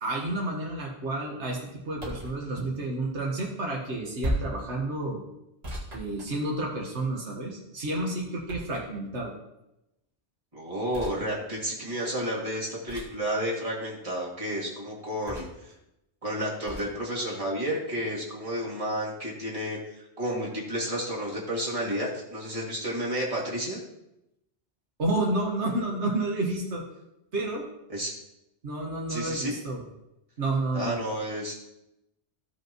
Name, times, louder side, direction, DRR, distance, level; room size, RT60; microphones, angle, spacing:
voice 1, 0.0-5.2 5.9-9.3 25.0-26.8 27.3-27.6 28.6-29.8 30.4-31.0, right 2 dB, 80° right, -2 dB, 1.7 m, -30 dB
sound 1, 1.9-2.4 4.2-4.6 5.6-6.8 8.5-9.1 10.9-11.2 12.9-13.2 15.3-15.7 16.7-16.9, equal, 65° right, 2.3 m, -35 dB
voice 2, 10.5-15.7 16.2-23.8 27.9-28.1 29.1-29.6 30.7-31.6, equal, 30° right, -5 dB, 2.4 m, -31 dB
15.5 x 5.4 x 3.0 m, 0.88 s
omnidirectional pair, 1.1 m